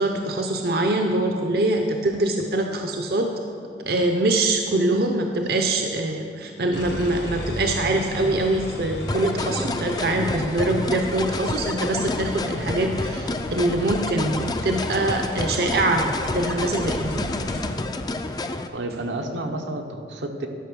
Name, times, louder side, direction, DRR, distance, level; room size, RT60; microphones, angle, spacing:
voice 1, 0.0-3.3 3.8-17.2, right 2 dB, 55° right, 3 dB, 0.6 m, -24 dB
sound 1, 6.7-17.6, equal, 70° left, 2.1 m, -34 dB
sound 2, 9.1-18.7, left 2 dB, 20° left, 0.4 m, -29 dB
voice 2, 18.7-20.5, right 1 dB, 85° right, 3 dB, 1.0 m, -30 dB
12.0 x 5.9 x 6.2 m, 2.5 s
head